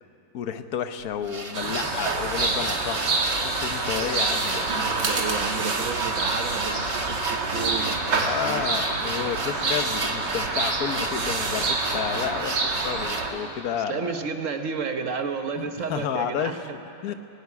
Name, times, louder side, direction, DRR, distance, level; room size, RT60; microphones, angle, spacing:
voice 1, 0.3-3.1 3.4-4.6 8.2-14.0 15.6-16.6 17.0-17.1, left 8 dB, 60° left, 9 dB, 1.3 m, -31 dB
sound 1, 1.0-13.4, right 3 dB, 25° right, 0.8 m, -35 dB
sound 2, 1.5-13.3, right 3 dB, 80° right, 2.4 m, -27 dB
voice 2, 4.8-8.7 13.2-16.8, right 5 dB, 50° right, 6 dB, 1.3 m, -32 dB
17.5 x 17.0 x 9.6 m, 2.7 s
omnidirectional pair, 1.8 m